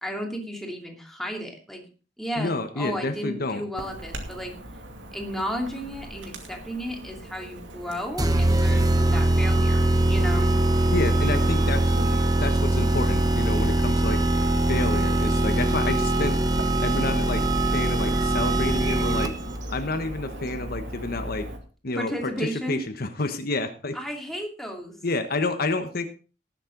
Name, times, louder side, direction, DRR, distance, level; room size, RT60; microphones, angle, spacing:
voice 1, 0.0-1.8 2.2-4.5 5.1-9.8 10.1-10.5 21.9-22.8 23.9-25.0, equal, ahead, 1 dB, 2.8 m, -33 dB
voice 2, 2.4-3.6 10.9-11.9 12.3-14.3 14.7-16.4 16.8-19.3 19.7-21.5 21.8-24.0 25.0-26.1, left 2 dB, 55° left, 8 dB, 1.3 m, -29 dB
Chirp tweet / Buzz, 3.8-21.6, right 1 dB, 85° right, 2.5 m, -38 dB
sound 1, 8.2-19.6, right 1 dB, 20° right, 0.9 m, -22 dB
18.5 x 7.6 x 3.9 m, 0.35 s
head